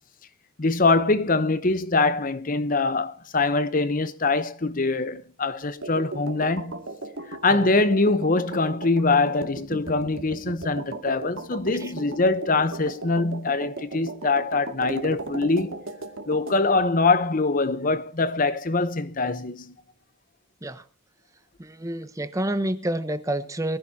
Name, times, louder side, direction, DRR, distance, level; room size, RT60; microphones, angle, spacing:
voice 1, 0.6-6.7 7.3-15.7 16.3-19.7, left 3 dB, 40° left, 0.9 m, -23 dB
sound 1, 5.8-16.6, right 2 dB, 80° right, 2.3 m, -37 dB
voice 2, 21.6-23.8, right 1 dB, 15° right, 1.0 m, -29 dB
23.5 x 15.5 x 2.8 m
head